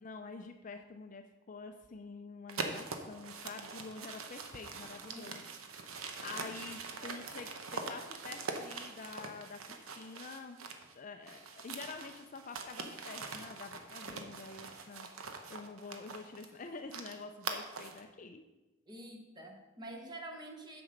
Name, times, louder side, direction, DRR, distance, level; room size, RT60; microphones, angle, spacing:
voice 1, 0.0-5.4 6.2-10.7 10.9-15.1 15.5-18.4, left 4 dB, 35° left, 6 dB, 0.5 m, -47 dB
sound 1, 2.5-10.9 11.2-18.0, right 4 dB, 80° right, 0.9 m, -43 dB
voice 2, 18.9-20.8, right 1 dB, 20° right, 2 dB, 1.1 m, -47 dB
7.2 x 7.0 x 5.2 m, 1.1 s
head